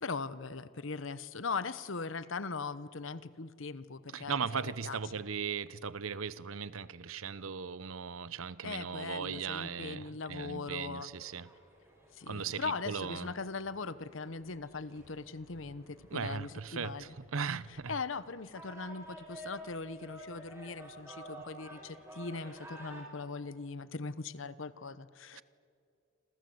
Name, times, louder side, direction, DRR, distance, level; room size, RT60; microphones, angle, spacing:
voice 1, 0.0-5.0 8.6-11.1 12.1-17.1 17.9-25.4, left 4 dB, 70° left, 1.0 m, -40 dB
voice 2, 4.1-11.5 12.3-13.3 16.1-17.9 25.3-25.4, right 6 dB, 90° right, 0.8 m, -38 dB
sound 1, 11.1-23.0, right 1 dB, 15° right, 5.3 m, -52 dB
28.0 x 27.0 x 7.9 m
head